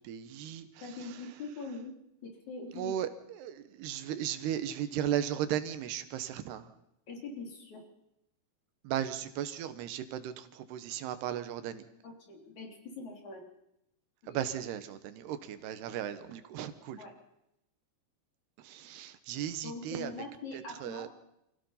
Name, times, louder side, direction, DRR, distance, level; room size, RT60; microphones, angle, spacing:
voice 1, 0.1-0.7 2.8-3.1 3.4-6.6 8.8-11.8 14.3-17.0 18.6-20.1 20.8-21.1, right 10 dB, 85° right, 11 dB, 3.3 m, -36 dB
voice 2, 0.8-1.9 2.2-2.9 7.1-7.8 12.0-13.5 14.2-14.5 16.9-17.1 19.6-21.1, left 3 dB, 50° left, 2 dB, 4.4 m, -43 dB
27.5 x 16.5 x 5.7 m, 0.84 s
omnidirectional pair, 4.5 m